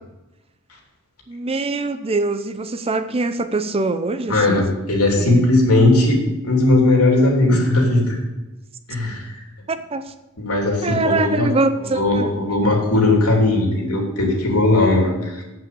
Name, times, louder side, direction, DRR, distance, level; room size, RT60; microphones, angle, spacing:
voice 1, 1.3-4.6 5.2-5.5 9.7-10.1 10.8-12.3, right 3 dB, 25° right, 10 dB, 0.6 m, -23 dB
voice 2, 4.3-8.2 8.9-9.3 10.4-11.5 11.9-15.4, left 2 dB, 80° left, -1 dB, 3.1 m, -18 dB
8.3 x 7.7 x 6.9 m, 1.0 s
head